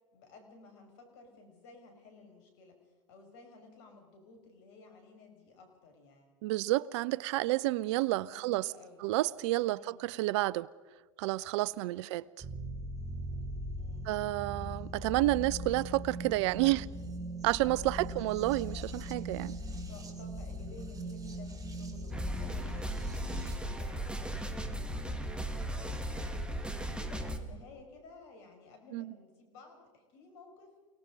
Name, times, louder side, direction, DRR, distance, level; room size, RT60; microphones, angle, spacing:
voice 1, 0.1-6.3 8.2-9.0 9.6-10.0 11.8-12.6 13.8-14.1 17.6-18.5 19.9-26.4 26.7-30.7, left 3 dB, 60° left, 6.4 m, -55 dB
voice 2, 6.4-8.7 9.0-10.7 11.2-12.2 14.0-16.9 17.4-19.6 28.9-29.1, right 18 dB, 55° right, 0.5 m, -30 dB
sound 1, 12.4-23.6, right 1 dB, 20° right, 2.9 m, -40 dB
sound 2, 22.1-27.4, right 1 dB, 5° right, 1.9 m, -36 dB
28.5 x 18.5 x 5.3 m
hypercardioid pair, 90°, 17 cm